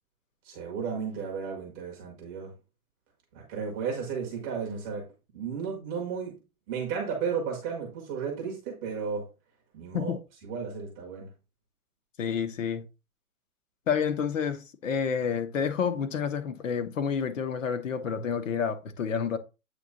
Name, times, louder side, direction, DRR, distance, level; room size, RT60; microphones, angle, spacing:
voice 1, 0.4-2.5 3.3-5.1 5.3-6.4 6.7-9.3 9.7-10.1 10.4-11.3, right 6 dB, 10° right, 0.7 m, -33 dB
voice 2, 12.2-12.8 13.9-19.4, left 7 dB, 60° left, 1.3 m, -29 dB
8.2 x 2.9 x 5.2 m
hypercardioid pair, 165°, 44 cm